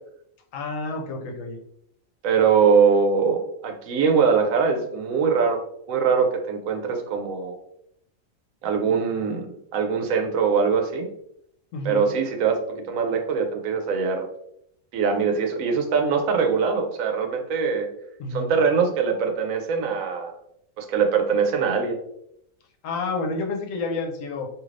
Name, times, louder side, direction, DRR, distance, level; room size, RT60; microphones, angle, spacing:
voice 1, 0.5-1.6 11.7-12.1 18.2-18.5 22.8-24.5, left 3 dB, 80° left, 1 dB, 1.0 m, -29 dB
voice 2, 2.2-5.6 5.9-7.5 8.6-11.1 11.8-14.3 14.9-17.9 18.3-20.4 20.8-22.0, right 6 dB, 90° right, 5 dB, 1.0 m, -22 dB
3.2 x 2.7 x 2.4 m, 0.73 s
omnidirectional pair, 1.4 m